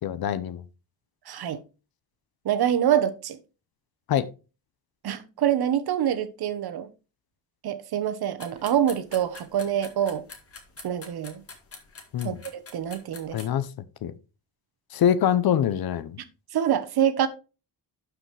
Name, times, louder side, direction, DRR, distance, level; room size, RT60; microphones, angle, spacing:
voice 1, 0.0-0.6 4.1-4.3 12.1-12.4 13.3-13.7 14.0-14.1 14.9-16.2, left 9 dB, 60° left, 0.8 m, -24 dB
voice 2, 1.3-1.6 2.4-3.4 5.0-6.9 7.6-10.2 10.8-11.4 12.2-13.4 16.5-17.3, right 10 dB, 60° right, 1.1 m, -25 dB
sound 1, 8.4-13.4, left 4 dB, 35° left, 1.9 m, -45 dB
11.5 x 5.0 x 3.3 m
cardioid pair, 135°, 41 cm